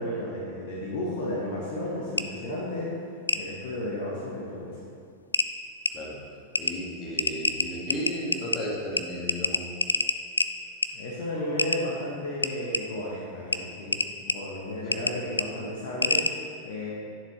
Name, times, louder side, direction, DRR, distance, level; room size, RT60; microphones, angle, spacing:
voice 1, 0.0-4.8 10.9-16.9, left 1 dB, 55° left, -4 dB, 1.4 m, -33 dB
sound 1, 2.2-2.3 3.3-3.4 4.8-4.9 5.3-5.5 5.9-6.0 6.5-6.7 7.2-8.6 9.0-9.1 9.3-10.5 10.8-10.9 11.6-11.8 12.4-12.8 13.5-13.6 13.9-14.3 14.9-15.1 15.4-15.5 16.0-16.3, left 3 dB, 80° left, 0.3 m, -25 dB
voice 2, 6.6-9.6 14.9-15.0, equal, 30° left, -3 dB, 2.0 m, -34 dB
11.0 x 7.0 x 3.3 m, 2.3 s
figure-of-eight pair, 90°, 0 cm